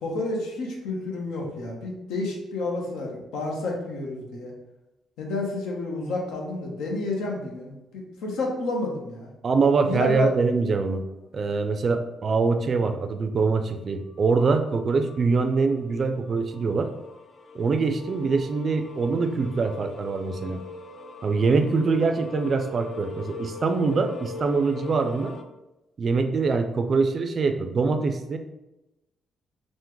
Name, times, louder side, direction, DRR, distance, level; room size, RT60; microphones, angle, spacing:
voice 1, 0.0-4.5 5.2-9.3 9.8-10.3, left 2 dB, 90° left, 0 dB, 0.7 m, -30 dB
voice 2, 9.4-11.0 11.3-16.9 17.5-20.6 21.2-25.3 26.0-28.4, right 4 dB, 45° right, 7 dB, 0.3 m, -24 dB
sound 1, 15.1-15.2 15.5-25.4, left 3 dB, 45° left, 0.3 m, -40 dB
3.5 x 2.1 x 3.0 m, 0.96 s
cardioid pair, 90°, 0 cm